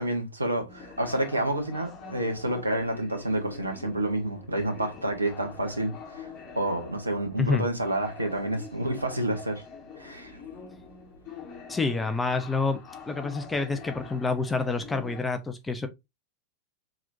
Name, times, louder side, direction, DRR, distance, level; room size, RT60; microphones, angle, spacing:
voice 1, 0.0-6.3 6.5-9.6 10.0-10.4, right 1 dB, 80° right, 1.4 m, -29 dB
sound 1, 0.7-15.2, left 5 dB, 35° left, 1.8 m, -45 dB
voice 2, 11.7-12.8 13.1-15.9, left 4 dB, 10° left, 0.8 m, -28 dB
4.8 x 3.7 x 2.7 m
figure-of-eight pair, 90°, 0 cm